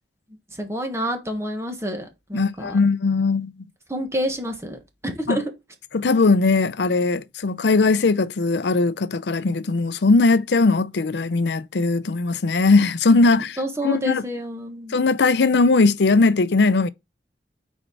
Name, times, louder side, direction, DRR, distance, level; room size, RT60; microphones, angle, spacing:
voice 1, 0.5-2.8 3.9-5.5 13.6-15.0, equal, 15° right, 1.4 m, -28 dB
voice 2, 2.3-3.5 5.3-5.4 5.9-13.6 13.8-14.2 14.9-16.9, left 3 dB, 75° left, 0.6 m, -19 dB
6.1 x 4.6 x 4.5 m
head